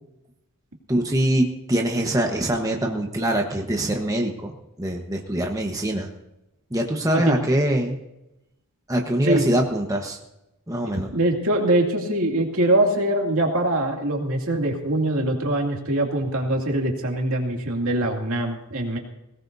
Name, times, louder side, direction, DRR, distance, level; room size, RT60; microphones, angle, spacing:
voice 1, 0.9-4.5 4.8-6.1 6.7-8.0 8.9-10.2 10.7-11.1, right 1 dB, 15° right, 2 dB, 1.2 m, -23 dB
voice 2, 11.1-19.0, right 1 dB, 70° right, 1 dB, 2.6 m, -23 dB
20.5 x 18.0 x 2.7 m, 0.88 s
head